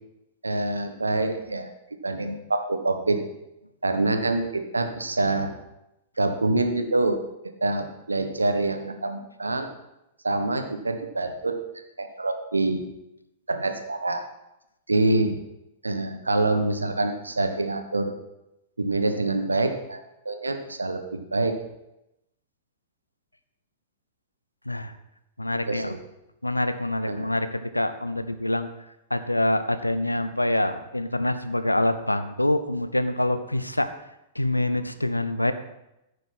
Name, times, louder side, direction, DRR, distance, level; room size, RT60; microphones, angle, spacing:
voice 1, 0.4-1.7 2.0-3.2 3.8-5.6 6.2-7.2 7.6-9.7 10.2-11.6 12.0-12.8 13.5-14.2 14.9-15.5 15.8-18.1 18.8-20.0 20.2-21.6 25.7-26.0 27.1-27.3, right 2 dB, 80° right, 6 dB, 1.2 m, -26 dB
voice 2, 25.4-26.0 26.4-28.7 29.1-33.9 34.3-35.5, left 1 dB, 85° left, 11 dB, 0.7 m, -25 dB
14.5 x 6.6 x 4.2 m, 0.88 s
figure-of-eight pair, 100°, 0 cm